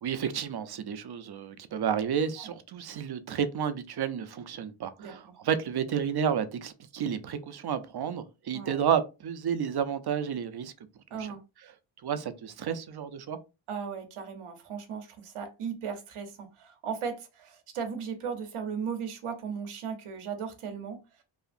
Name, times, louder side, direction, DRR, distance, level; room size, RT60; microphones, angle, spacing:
voice 1, 0.0-10.7 11.2-11.3 12.0-13.4, right 8 dB, 50° right, 0.5 m, -31 dB
voice 2, 5.0-5.4 8.5-8.8 11.1-11.4 13.7-21.2, right 6 dB, 85° right, 0.8 m, -37 dB
2.8 x 2.4 x 2.4 m
cardioid pair, 70°, 50 cm